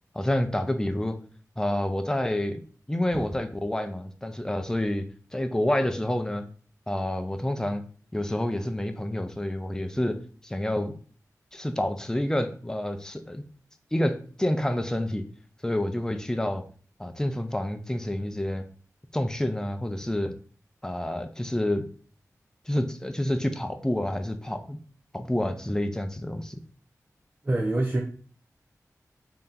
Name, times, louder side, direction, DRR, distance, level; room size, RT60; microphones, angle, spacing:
voice 1, 0.1-1.2 1.6-2.6 2.9-6.5 6.9-7.9 8.1-11.0 11.5-13.4 13.9-15.3 15.6-16.7 17.0-18.7 19.1-20.3 20.8-21.9 22.7-24.8 25.1-26.6, left 1 dB, 10° left, 7 dB, 0.5 m, -28 dB
voice 2, 27.4-28.0, right 2 dB, 30° right, 1 dB, 0.6 m, -25 dB
3.3 x 2.8 x 3.8 m, 0.43 s
cardioid pair, 50°, 6 cm